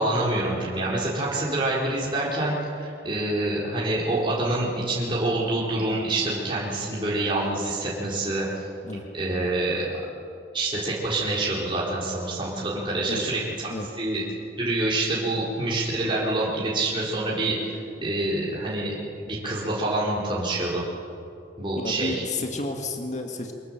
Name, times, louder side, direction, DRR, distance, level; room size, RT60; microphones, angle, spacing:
voice 1, 0.0-8.7 9.1-9.9 10.5-13.7 14.0-14.2 14.6-18.9 19.2-20.8 21.6-22.2, right 2 dB, 30° right, -6 dB, 4.2 m, -26 dB
voice 2, 21.8-23.5, left 2 dB, 40° left, 3 dB, 1.9 m, -31 dB
25.0 x 21.0 x 7.5 m, 2.5 s
head